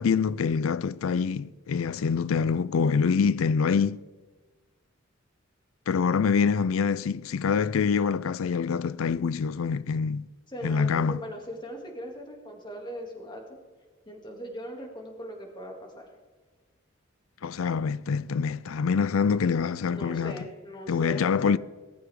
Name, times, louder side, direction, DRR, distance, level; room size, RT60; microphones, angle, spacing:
voice 1, 0.0-4.0 5.9-10.3 10.6-11.2 17.4-20.4 20.9-21.6, left 6 dB, 80° left, 0.4 m, -25 dB
voice 2, 10.5-13.6 14.1-16.1 19.9-21.6, equal, 25° left, 2.7 m, -40 dB
18.5 x 14.5 x 3.7 m
head